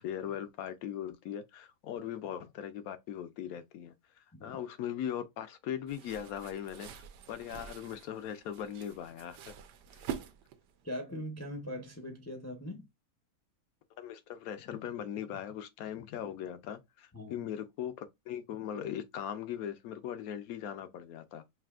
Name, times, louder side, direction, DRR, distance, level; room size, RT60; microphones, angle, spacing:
voice 1, 0.0-3.9 4.4-6.9 7.3-9.5 10.0-10.1 14.0-21.4, left 9 dB, 70° left, 1.0 m, -39 dB
sound 1, 5.9-10.8, right 9 dB, 90° right, 1.2 m, -46 dB
voice 2, 10.8-12.9 17.1-17.5, left 1 dB, 15° left, 0.5 m, -41 dB
5.8 x 2.7 x 2.3 m
omnidirectional pair, 1.7 m